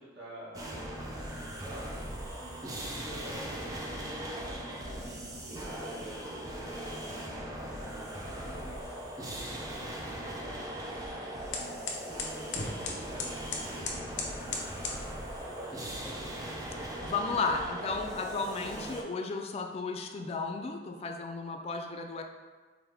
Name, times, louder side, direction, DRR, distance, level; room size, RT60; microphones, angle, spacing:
voice 1, 0.0-1.8 2.3-6.2 6.7-9.5 9.8-16.3, equal, 85° right, -7 dB, 1.4 m, -50 dB
sound 1, 0.5-19.0, right 1 dB, 20° right, 0.5 m, -39 dB
sound 2, 8.3-15.0, left 3 dB, 80° left, 0.6 m, -41 dB
voice 2, 17.0-22.2, left 4 dB, 35° left, 4 dB, 0.3 m, -34 dB
4.7 x 2.1 x 3.4 m, 1.4 s
head